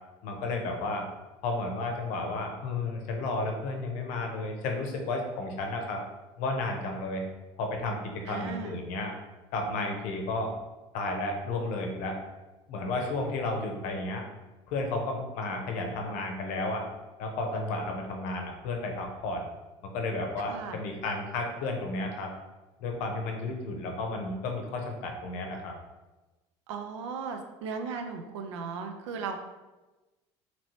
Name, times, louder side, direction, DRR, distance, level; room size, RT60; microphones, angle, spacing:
voice 1, 0.2-1.0 1.4-6.0 6.4-7.3 7.6-8.0 8.2-9.1 9.5-10.5 10.9-12.2 12.7-14.2 14.7-16.8 17.2-19.4 19.9-22.3 22.8-25.7, left 2 dB, 65° left, 2 dB, 0.7 m, -32 dB
voice 2, 8.3-8.8 20.5-20.8 26.7-29.4, right 5 dB, 85° right, 5 dB, 0.4 m, -36 dB
2.9 x 2.7 x 3.0 m, 1.1 s
hypercardioid pair, 80°, 15 cm